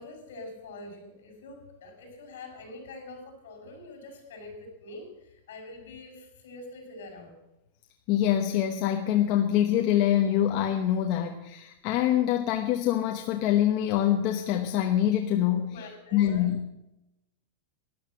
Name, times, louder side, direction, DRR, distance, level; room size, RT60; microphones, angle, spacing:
voice 1, 0.0-7.4 15.7-16.5, left 2 dB, 70° left, 2 dB, 6.3 m, -45 dB
voice 2, 8.1-15.7 16.1-16.6, left 11 dB, 35° left, 3 dB, 1.1 m, -25 dB
13.0 x 11.0 x 7.6 m, 0.90 s
supercardioid pair, 170°, 0 cm